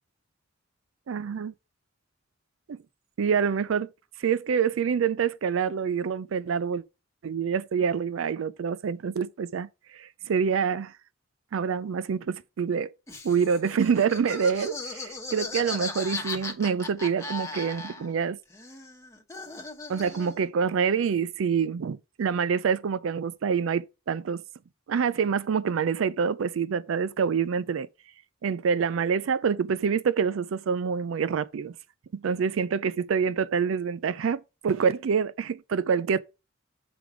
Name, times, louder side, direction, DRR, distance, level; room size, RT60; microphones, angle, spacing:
voice 1, 1.1-1.5 2.7-2.8 3.2-3.9 4.2-6.8 7.2-11.0 11.5-12.9 13.2-18.4 19.9-24.4 24.9-27.9 28.4-31.7 32.1-36.2, right 6 dB, 90° right, 0.4 m, -26 dB
Laughter, 13.1-18.2 18.5-20.5, left 3 dB, 15° left, 1.0 m, -37 dB
7.7 x 3.4 x 4.7 m
head